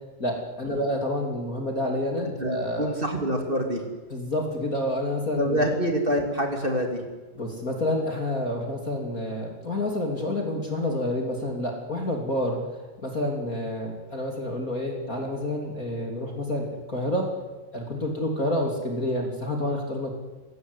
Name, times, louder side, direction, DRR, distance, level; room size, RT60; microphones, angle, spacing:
voice 1, 0.2-3.0 4.1-5.7 7.3-12.6 13.0-17.3 17.7-20.1, left 1 dB, 25° left, 1 dB, 2.2 m, -28 dB
voice 2, 2.4-3.8 5.3-7.0 18.0-18.1, equal, 30° right, 3 dB, 1.0 m, -26 dB
29.5 x 18.0 x 8.3 m, 1.2 s
omnidirectional pair, 5.9 m